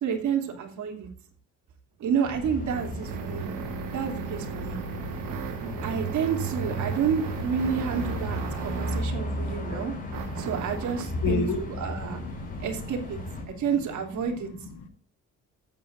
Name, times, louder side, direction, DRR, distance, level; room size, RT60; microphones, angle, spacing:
voice 1, 0.0-1.1 2.0-3.6 3.9-4.8 5.6-10.0 10.4-12.2 12.6-13.2 13.6-14.5, right 7 dB, 65° right, 3 dB, 3.1 m, -30 dB
sound 1, 2.0-9.2 10.1-11.2, right 8 dB, 85° right, 1.2 m, -36 dB
sound 2, 2.2-13.4, left 1 dB, 25° left, 5.6 m, -35 dB
voice 2, 8.6-10.6 11.2-11.6 12.2-12.7 13.4-13.6 14.3-14.4, left 5 dB, 75° left, 4 dB, 2.9 m, -34 dB
14.5 x 9.4 x 2.6 m, 0.41 s
cardioid pair, 130°, 31 cm